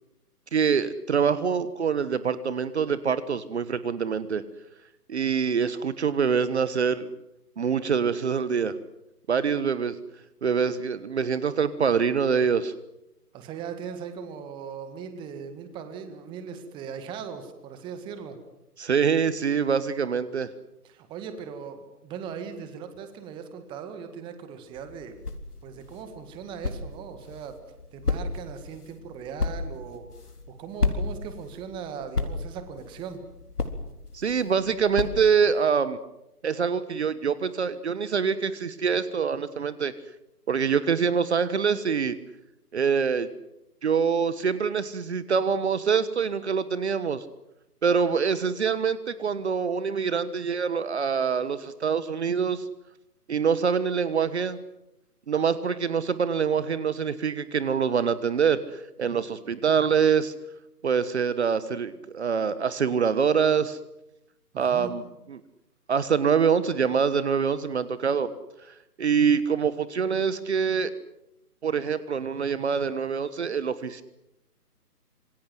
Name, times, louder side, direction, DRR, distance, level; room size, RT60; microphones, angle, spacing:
voice 1, 0.5-4.4 5.1-7.1 7.6-8.7 9.3-10.0 10.4-12.7 18.8-20.5 34.1-36.0 36.4-39.9 40.5-42.2 42.7-43.3 43.8-47.2 47.8-52.6 53.3-54.6 55.3-60.3 60.8-63.8 64.6-65.0 65.3-65.4 65.9-68.3 69.0-70.9 71.6-74.0, right 6 dB, 45° right, 15 dB, 1.4 m, -25 dB
voice 2, 13.3-18.4 20.8-25.1 25.6-27.6 27.9-30.1 30.5-33.2 64.5-64.9, right 7 dB, 10° right, 9 dB, 1.7 m, -39 dB
sound 1, 24.7-35.6, left 3 dB, 70° left, 3.9 m, -34 dB
26.5 x 24.5 x 7.8 m, 0.88 s
figure-of-eight pair, 145°, 47 cm